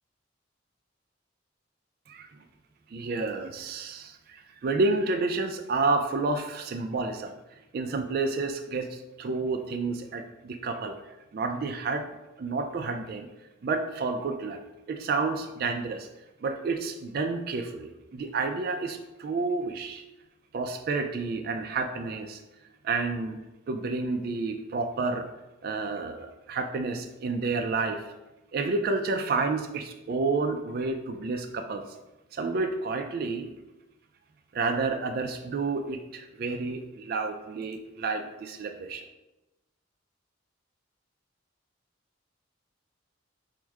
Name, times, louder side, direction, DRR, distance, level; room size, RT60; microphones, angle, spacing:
voice 1, 2.9-7.4 7.7-11.0 11.3-12.1 12.4-13.3 13.6-14.6 14.9-16.1 16.4-20.0 20.5-22.4 22.8-23.4 23.7-25.3 25.6-28.1 28.5-31.8 32.3-33.5 34.5-39.0, right 3 dB, 50° right, 5 dB, 0.3 m, -30 dB
4.6 x 2.1 x 4.6 m, 0.99 s
head